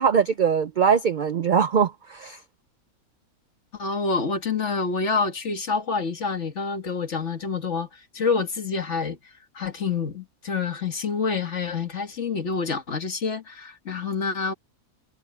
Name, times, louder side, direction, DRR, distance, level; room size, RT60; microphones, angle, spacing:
voice 1, 0.0-2.4, right 7 dB, 65° right, 0.4 m, -21 dB
voice 2, 3.8-7.9 8.1-9.2 9.6-14.5, left 4 dB, 55° left, 1.9 m, -27 dB
omnidirectional pair, 1.5 m